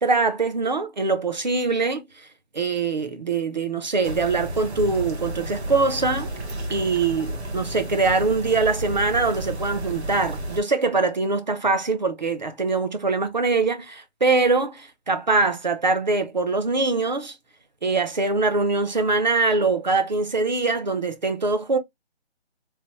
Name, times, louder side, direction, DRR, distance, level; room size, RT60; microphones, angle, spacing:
voice 1, 0.0-2.3 2.5-6.3 6.7-17.4 17.8-21.8, right 3 dB, 40° right, 0.5 m, -23 dB
sound 1, 4.0-10.6, right 1 dB, 75° right, 1.2 m, -32 dB
3.2 x 2.6 x 3.0 m
hypercardioid pair, 170°, 33 cm